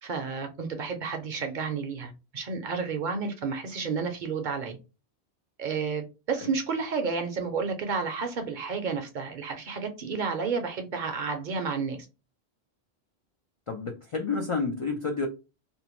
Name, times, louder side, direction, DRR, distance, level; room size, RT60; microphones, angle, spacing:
voice 1, 0.0-4.8 5.6-12.0, right 5 dB, 55° right, 0.6 m, -31 dB
voice 2, 13.7-15.3, left 4 dB, 55° left, 0.3 m, -29 dB
2.7 x 2.1 x 2.9 m
omnidirectional pair, 1.1 m